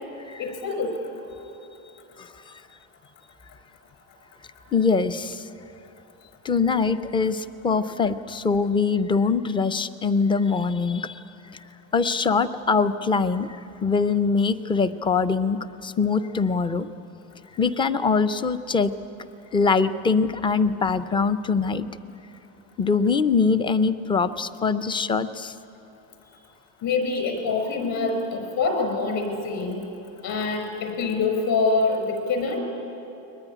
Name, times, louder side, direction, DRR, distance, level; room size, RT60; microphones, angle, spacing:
voice 1, 0.4-1.0 26.8-29.8 30.2-32.6, left 4 dB, 50° left, 5 dB, 5.6 m, -25 dB
voice 2, 4.7-5.4 6.4-11.2 11.9-13.5 13.8-16.9 17.6-18.9 19.5-21.9 22.8-25.5, left 4 dB, 10° left, 13 dB, 0.4 m, -23 dB
22.0 x 20.0 x 9.9 m, 3.0 s
supercardioid pair, 135°, 45 cm